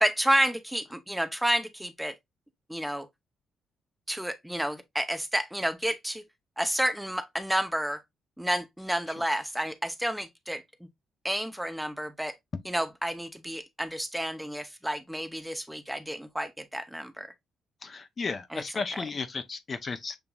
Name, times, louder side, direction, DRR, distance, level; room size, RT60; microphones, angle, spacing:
voice 1, 0.0-2.1 2.7-3.1 4.1-6.2 6.6-8.0 8.4-10.6 11.2-12.3 12.6-17.3 18.5-19.1, equal, 5° right, 0.6 m, -30 dB
voice 2, 17.8-20.2, left 4 dB, 40° left, 0.6 m, -34 dB
7.0 x 2.8 x 2.3 m
cardioid pair, 90°, 0 cm